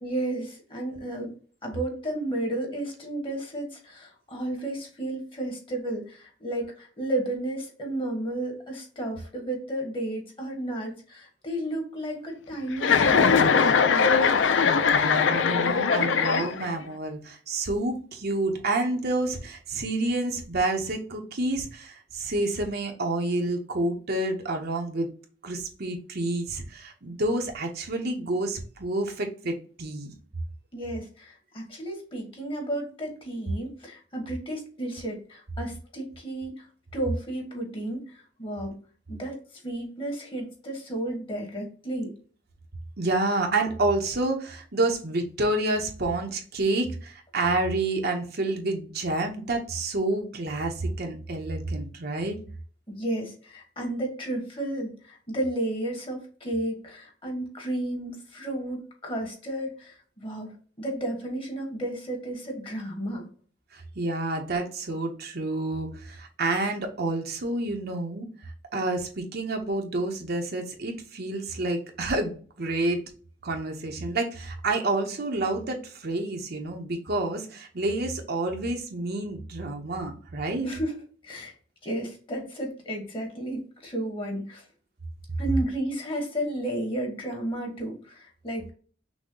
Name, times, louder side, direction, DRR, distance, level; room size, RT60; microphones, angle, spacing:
voice 1, 0.0-1.3 1.6-14.1 30.7-36.6 36.9-38.8 39.1-39.4 39.6-42.1 52.9-63.3 80.6-81.5 81.8-84.6 85.4-88.7, right 1 dB, 30° left, 1 dB, 1.5 m, -32 dB
Chuckle chortle, 12.8-16.8, left 6 dB, 75° left, 0.5 m, -21 dB
voice 2, 14.9-25.1 25.4-30.1 43.0-52.4 63.7-68.3 68.7-73.0 73.4-80.7, right 2 dB, 55° right, 3 dB, 0.9 m, -29 dB
6.1 x 2.2 x 3.8 m, 0.41 s
head